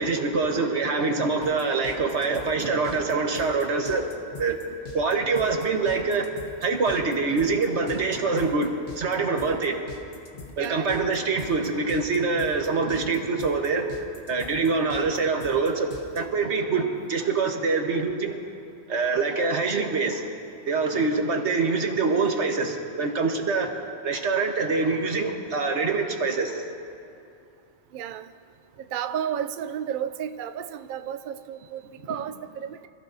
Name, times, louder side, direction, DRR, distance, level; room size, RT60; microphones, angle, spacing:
voice 1, 0.0-4.1 4.4-4.6 4.9-9.8 10.6-13.9 14.3-18.4 18.9-20.3 20.7-23.8 24.0-26.6, right 4 dB, 90° right, 3 dB, 1.6 m, -25 dB
sound 1, 1.4-16.2, left 4 dB, 70° left, 1.4 m, -43 dB
voice 2, 10.6-10.9 27.9-28.3 28.9-32.9, right 9 dB, 60° right, 11 dB, 0.6 m, -32 dB
26.5 x 14.5 x 2.7 m, 2.5 s
omnidirectional pair, 1.1 m